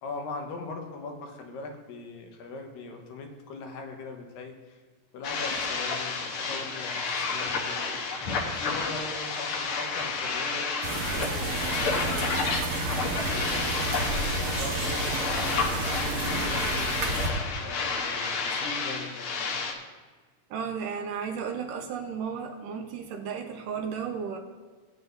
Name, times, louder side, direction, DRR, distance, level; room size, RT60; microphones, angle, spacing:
voice 1, 0.0-4.8 5.1-7.9 8.4-12.7 13.2-17.3 17.6-19.6, left 3 dB, 85° left, 2 dB, 3.0 m, -40 dB
sound 1, 5.2-19.7, left 4 dB, 65° left, 1.4 m, -30 dB
sound 2, 10.8-17.3, right 2 dB, 60° right, 2.3 m, -31 dB
voice 2, 20.5-24.4, right 6 dB, 80° right, 4 dB, 2.6 m, -34 dB
17.5 x 8.8 x 2.6 m, 1.5 s
omnidirectional pair, 3.8 m